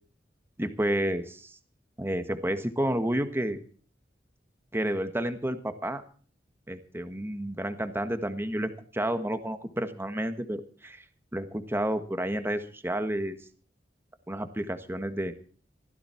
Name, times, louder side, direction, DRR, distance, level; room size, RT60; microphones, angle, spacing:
voice 1, 0.6-1.5 2.0-3.6 4.7-6.0 6.7-11.0 11.3-13.4 14.3-15.3, right 1 dB, 15° right, 9 dB, 1.4 m, -30 dB
16.0 x 13.5 x 4.5 m, 0.42 s
head